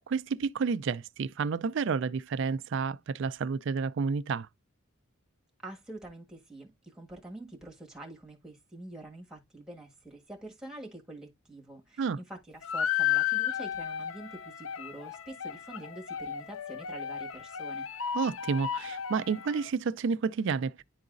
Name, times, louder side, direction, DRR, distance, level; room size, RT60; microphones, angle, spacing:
voice 1, 0.1-4.5 12.0-12.2 18.1-20.8, right 5 dB, 60° right, 0.4 m, -30 dB
voice 2, 5.6-17.9, right 2 dB, 5° right, 1.6 m, -46 dB
sound 1, 12.6-19.7, left 10 dB, 70° left, 0.5 m, -33 dB
10.5 x 3.9 x 2.5 m
head